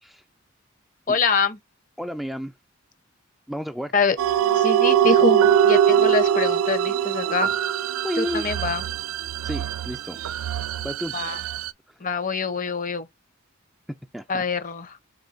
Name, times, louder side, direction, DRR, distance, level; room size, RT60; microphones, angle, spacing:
voice 1, 1.1-1.6 3.9-4.2 4.5-7.5 8.1-8.8 11.1-11.4 12.0-13.1 14.3-15.0, left 5 dB, 40° left, 0.7 m, -25 dB
voice 2, 2.0-2.5 3.5-3.9 8.0-8.5 9.4-10.2 10.8-11.1 11.9-12.0 14.1-14.4, equal, ahead, 0.3 m, -31 dB
sound 1, 4.2-11.7, right 9 dB, 90° right, 0.3 m, -22 dB
4.4 x 3.1 x 3.9 m
head